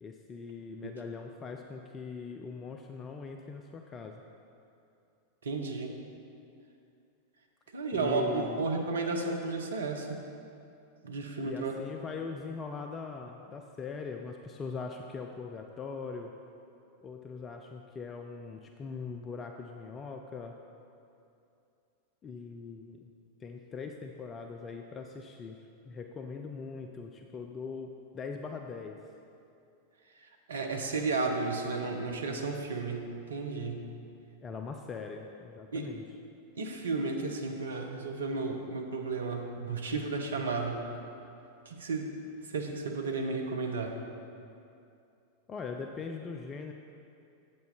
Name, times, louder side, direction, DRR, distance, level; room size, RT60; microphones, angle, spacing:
voice 1, 0.0-4.2 7.9-8.6 11.4-16.3 17.0-20.5 22.2-23.1 23.4-25.6 25.9-29.0 34.4-36.0 45.5-46.7, left 5 dB, 25° left, 4 dB, 0.4 m, -41 dB
voice 2, 5.4-5.9 7.7-10.2 11.0-11.7 30.5-33.8 35.7-35.9 36.5-40.8 41.7-42.1 42.5-44.0, right 3 dB, 70° right, 2 dB, 0.9 m, -33 dB
8.5 x 8.1 x 4.1 m, 2.6 s
figure-of-eight pair, 90°, 0 cm